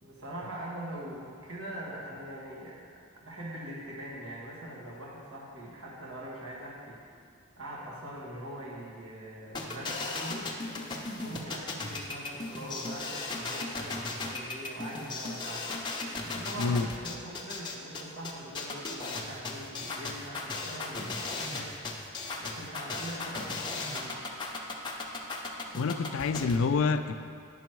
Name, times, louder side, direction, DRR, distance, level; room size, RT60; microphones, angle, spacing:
voice 1, 0.0-2.9 3.2-7.0 7.6-10.5 11.2-15.7 16.2-21.9 22.4-24.2, right 1 dB, 85° right, -5 dB, 1.7 m, -42 dB
sound 1, 9.5-26.6, left 3 dB, 20° left, 0.6 m, -36 dB
voice 2, 16.6-16.9 25.8-27.1, left 4 dB, 70° left, 9 dB, 0.4 m, -27 dB
9.3 x 6.2 x 4.6 m, 2.2 s
head